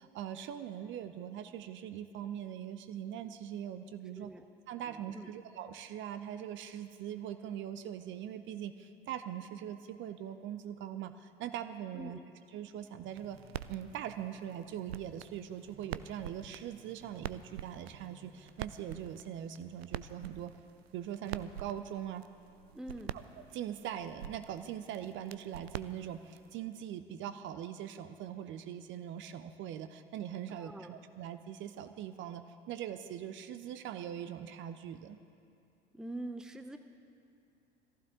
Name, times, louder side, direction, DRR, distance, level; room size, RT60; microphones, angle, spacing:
voice 1, 0.0-4.3 4.7-12.2 12.5-13.4 13.7-20.5 20.9-22.3 23.4-35.2, right 10 dB, 35° right, 10 dB, 0.8 m, -42 dB
voice 2, 4.1-4.5 4.9-5.3 11.9-12.3 22.7-23.2 30.6-31.0 35.9-36.8, right 1 dB, ahead, 7 dB, 0.7 m, -44 dB
sound 1, 13.0-19.6, right 1 dB, 25° left, 2.8 m, -62 dB
sound 2, 13.1-26.5, right 10 dB, 70° right, 0.5 m, -47 dB
22.0 x 15.0 x 3.8 m, 2.5 s
figure-of-eight pair, 70°, 32 cm